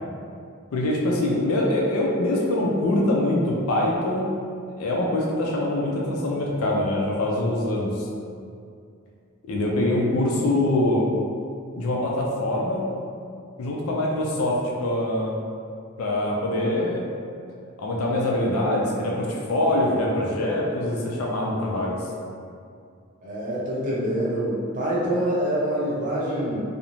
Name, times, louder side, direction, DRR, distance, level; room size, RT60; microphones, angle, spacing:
voice 1, 0.7-4.3 4.8-8.1 9.5-11.0 11.7-12.8 13.6-15.4 16.0-17.0 17.8-22.0, left 1 dB, 85° left, -2 dB, 0.4 m, -24 dB
voice 2, 23.2-26.6, right 1 dB, 35° right, -7 dB, 0.6 m, -25 dB
2.5 x 2.0 x 2.9 m, 2.4 s
head